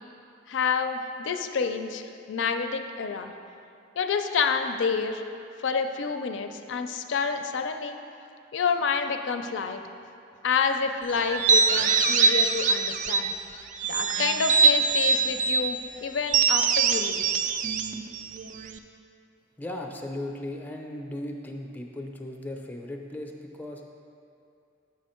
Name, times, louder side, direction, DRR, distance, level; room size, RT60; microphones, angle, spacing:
voice 1, 0.5-2.0 2.3-3.3 4.0-5.2 5.6-8.0 8.5-9.8 10.4-13.3 13.9-17.3, left 5 dB, 75° left, 7 dB, 0.4 m, -28 dB
sound 1, 11.3-13.4 13.8-15.7 16.3-18.8, right 5 dB, 45° right, 0.3 m, -23 dB
voice 2, 19.6-23.9, left 1 dB, 10° left, 1 dB, 0.5 m, -37 dB
7.1 x 5.7 x 4.3 m, 2.6 s
head